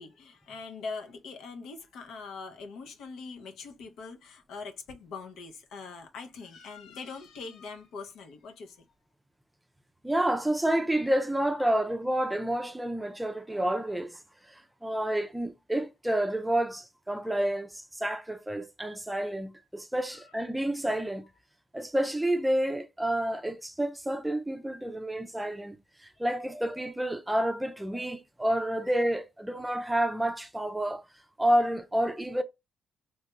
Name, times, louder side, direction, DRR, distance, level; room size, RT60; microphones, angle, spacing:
voice 1, 0.0-8.9 11.6-11.8 20.1-20.2, left 4 dB, 85° left, 0.6 m, -42 dB
voice 2, 10.0-21.3 21.7-31.0 31.4-32.4, right 1 dB, 10° right, 0.4 m, -29 dB
3.2 x 2.3 x 2.9 m
cardioid pair, 100°, 0 cm